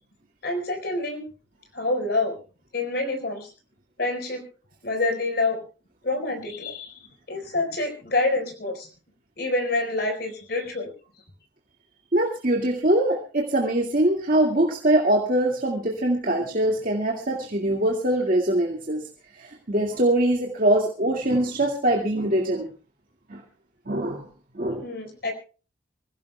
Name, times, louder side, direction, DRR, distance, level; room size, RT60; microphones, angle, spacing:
voice 1, 0.4-1.2 1.7-2.4 2.7-3.5 4.0-4.4 4.8-5.6 6.0-7.0 7.3-8.9 9.4-10.9 24.8-25.3, left 2 dB, 55° left, 4 dB, 4.4 m, -27 dB
voice 2, 12.1-19.1 19.4-22.7 23.3-23.4 23.9-24.3 24.5-24.9, right 1 dB, 45° right, -1 dB, 2.0 m, -23 dB
25.5 x 16.0 x 2.2 m, 0.35 s
head